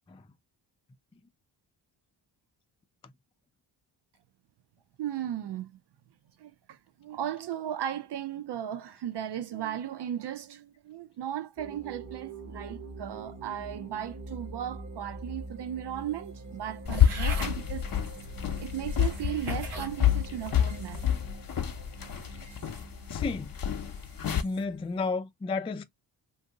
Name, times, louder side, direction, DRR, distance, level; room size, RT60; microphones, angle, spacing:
voice 1, 5.0-5.7 6.4-17.9 18.6-21.0 22.3-22.5, right 10 dB, 55° right, 0.5 m, -36 dB
sound 1, 11.6-25.1, right 3 dB, 35° right, 1.3 m, -44 dB
sound 2, 16.8-24.4, left 10 dB, 45° left, 0.8 m, -28 dB
sound 3, 16.9-17.6 18.4-18.5 19.1-19.9 20.5-20.9, right 3 dB, 90° right, 1.3 m, -40 dB
voice 2, 23.1-23.5 24.4-25.8, left 4 dB, 15° left, 0.3 m, -32 dB
2.6 x 2.5 x 3.6 m
cardioid pair, 60°, 49 cm